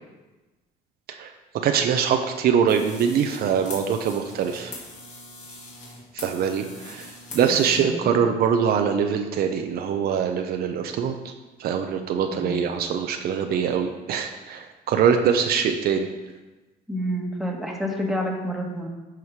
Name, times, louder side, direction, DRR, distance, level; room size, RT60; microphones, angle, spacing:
voice 1, 1.2-4.7 6.1-7.1 7.3-11.3 11.6-16.1, right 7 dB, 65° right, 5 dB, 0.8 m, -23 dB
sound 1, 2.7-7.8, left 2 dB, 45° left, 2.4 m, -41 dB
voice 2, 7.4-8.1 12.3-12.6 16.9-18.9, equal, ahead, -1 dB, 1.6 m, -29 dB
10.5 x 4.9 x 4.8 m, 1.2 s
cardioid pair, 110°, 17 cm